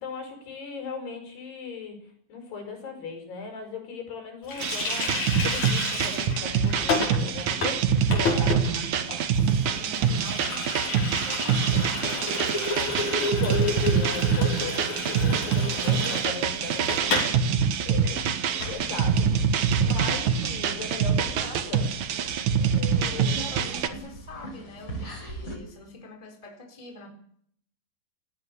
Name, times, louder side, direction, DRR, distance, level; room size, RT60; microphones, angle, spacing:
voice 1, 0.0-2.0 2.3-8.5 8.7-8.8 12.8-17.3 17.9-18.2 18.5-21.9 22.6-23.4, left 4 dB, 60° left, 5 dB, 7.4 m, -38 dB
Water tap faucet, 4.5-17.4 17.6-17.7 18.0-18.8, left 3 dB, 40° left, 6.3 m, -31 dB
sound 1, 4.6-23.9, right 7 dB, 60° right, 2.1 m, -25 dB
voice 2, 8.3-8.9 9.3-12.5 16.8-17.6 19.8-20.3 23.1-27.1, left 2 dB, 10° left, 3 dB, 3.8 m, -45 dB
sound 2, 18.6-25.6, equal, 25° left, 7.6 m, -41 dB
29.5 x 18.5 x 7.0 m, 0.64 s
omnidirectional pair, 5.2 m